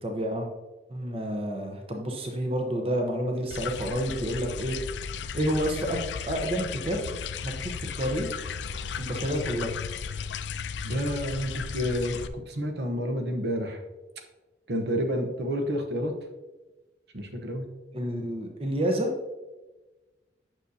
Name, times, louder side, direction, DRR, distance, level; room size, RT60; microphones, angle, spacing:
voice 1, 0.0-0.5 0.9-4.8 5.3-6.0 6.3-7.2 7.4-8.5 8.9-9.7 17.9-19.1, equal, 35° right, 3 dB, 0.8 m, -29 dB
sound 1, 3.5-12.3, left 6 dB, 80° left, 0.4 m, -35 dB
voice 2, 10.8-13.8 14.7-16.1 17.1-17.7, equal, 65° right, 4 dB, 0.9 m, -29 dB
9.1 x 6.5 x 2.7 m, 1.2 s
head